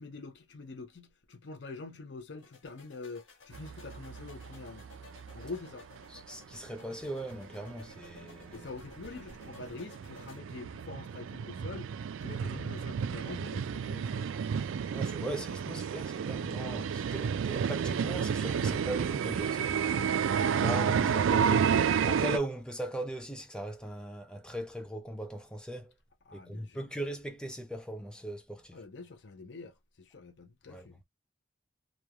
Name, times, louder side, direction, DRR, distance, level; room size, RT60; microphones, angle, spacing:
voice 1, 0.0-4.8 5.3-5.8 8.5-11.9 12.2-14.3 21.0-21.4 26.3-26.8 28.7-31.0, left 3 dB, 65° left, 0.6 m, -45 dB
sound 1, 2.4-10.4, left 3 dB, 85° left, 1.6 m, -56 dB
sound 2, 3.5-5.6 5.9-6.0 6.5-6.6 6.9-7.0 7.3-22.4, right 7 dB, 90° right, 0.3 m, -31 dB
voice 2, 6.1-8.7 14.9-19.9 20.5-21.7 22.0-25.9 26.3-28.8 30.7-31.0, right 1 dB, 5° left, 0.5 m, -39 dB
3.1 x 2.3 x 2.2 m
head